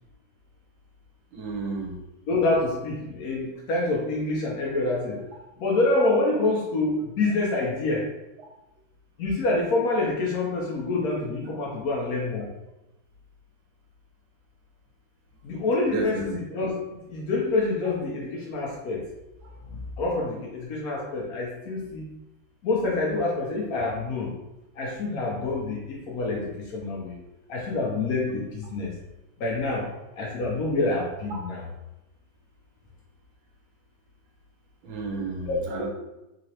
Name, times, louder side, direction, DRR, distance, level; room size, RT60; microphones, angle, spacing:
voice 1, 1.3-2.0 15.9-16.4 31.3-31.4 34.8-35.9, right 4 dB, 75° right, -1 dB, 1.5 m, -32 dB
voice 2, 2.3-5.2 5.6-8.1 9.2-12.5 15.4-16.8 17.1-19.0 20.0-22.0 22.6-24.3 24.8-27.1 27.5-28.9 29.4-29.8 30.1-31.6 35.5-35.9, left 2 dB, 80° left, -3 dB, 0.8 m, -26 dB
3.7 x 3.0 x 2.9 m, 0.95 s
omnidirectional pair, 2.3 m